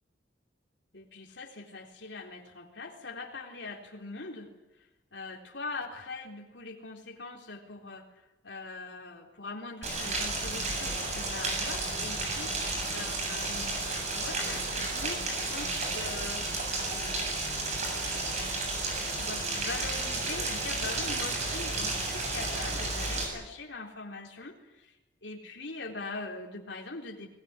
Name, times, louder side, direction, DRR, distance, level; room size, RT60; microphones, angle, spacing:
voice 1, 0.9-13.8 14.1-17.4 17.9-18.8 19.1-25.0 25.2-27.3, left 3 dB, 65° left, 2 dB, 4.0 m, -42 dB
Rain, 9.8-23.3, right 2 dB, 40° right, 7.9 m, -32 dB
21.5 x 20.5 x 10.0 m, 1.0 s
head